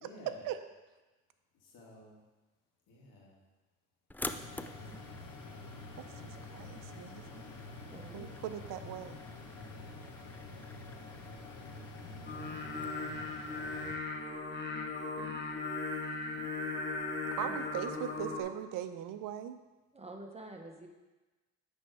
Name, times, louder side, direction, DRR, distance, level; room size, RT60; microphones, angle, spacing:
voice 1, 0.0-0.5 1.6-2.2 2.9-3.4 4.7-5.1 9.0-9.1, left 1 dB, 90° left, -3 dB, 1.8 m, -55 dB
sound 1, 4.1-12.9, left 1 dB, 5° left, 0.3 m, -48 dB
sound 2, 4.2-14.0, left 3 dB, 70° left, 1.2 m, -48 dB
voice 2, 6.5-7.5 8.1-9.2 17.4-19.6, right 10 dB, 80° right, 10 dB, 0.6 m, -40 dB
voice 3, 7.9-8.4 17.5-17.6 19.9-20.9, right 2 dB, 20° right, 2 dB, 1.1 m, -48 dB
Singing, 12.3-18.4, left 3 dB, 35° left, 1.3 m, -37 dB
9.2 x 3.5 x 4.6 m, 1.2 s
cardioid pair, 75°, 33 cm